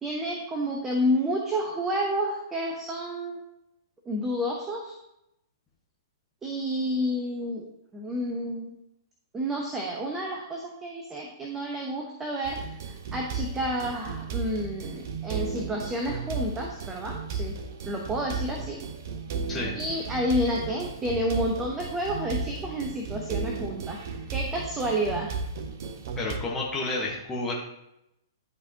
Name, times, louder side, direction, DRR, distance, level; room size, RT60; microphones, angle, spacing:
voice 1, 0.0-3.4 4.0-5.0 6.4-7.7 7.9-8.7 9.3-12.6 13.1-17.6 17.8-18.8 19.7-24.0 24.3-25.3, equal, 15° right, 0 dB, 0.8 m, -30 dB
sound 1, 12.4-26.4, right 5 dB, 50° right, 0.7 m, -35 dB
voice 2, 26.2-27.5, left 2 dB, 15° left, -4 dB, 1.1 m, -30 dB
10.5 x 4.2 x 2.8 m, 0.84 s
figure-of-eight pair, 110°, 2 cm